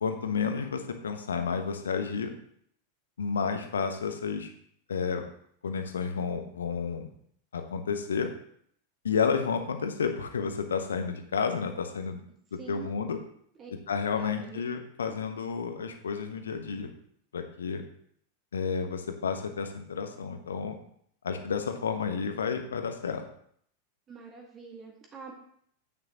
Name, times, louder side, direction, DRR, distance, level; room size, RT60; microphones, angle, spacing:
voice 1, 0.0-2.3 3.2-4.5 4.9-5.3 5.6-7.1 7.5-8.3 9.0-12.2 12.5-13.2 13.9-16.9 17.3-17.8 18.5-20.8 21.2-23.2, left 6 dB, 70° left, 7 dB, 1.2 m, -31 dB
voice 2, 12.6-12.9 13.6-13.7 14.2-14.7 24.1-25.3, right 5 dB, 25° right, 1 dB, 1.8 m, -45 dB
9.4 x 9.4 x 3.0 m, 0.65 s
figure-of-eight pair, 90°, 0 cm